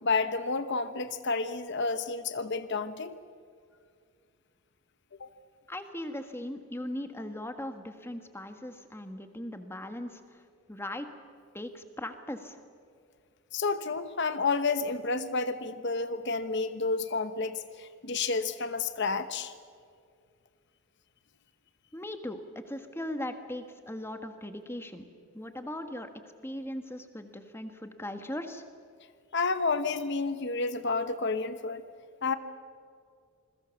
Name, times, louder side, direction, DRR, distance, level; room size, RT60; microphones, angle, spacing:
voice 1, 0.0-3.1 5.2-5.3 13.5-19.5 29.3-31.8 32.2-32.3, left 4 dB, 55° left, 11 dB, 1.0 m, -30 dB
voice 2, 5.7-10.4 10.7-11.1 11.5-12.6 21.9-25.0 25.3-26.1 26.4-28.6, left 1 dB, 10° left, 7 dB, 1.5 m, -39 dB
27.5 x 21.5 x 7.1 m, 2.3 s
head